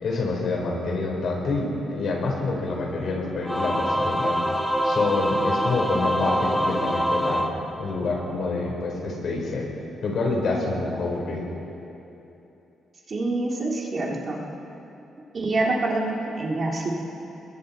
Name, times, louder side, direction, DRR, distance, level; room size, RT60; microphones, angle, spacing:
voice 1, 0.0-4.4 4.8-7.5 7.8-9.7 10.0-11.4, left 3 dB, 50° left, -1 dB, 4.4 m, -27 dB
Singing / Musical instrument, 3.4-8.3, equal, ahead, 1.4 m, -25 dB
voice 2, 13.1-14.4 15.3-16.9, right 2 dB, 30° right, -1 dB, 2.4 m, -26 dB
29.5 x 21.5 x 4.4 m, 2.9 s
wide cardioid pair, 180°, 0 cm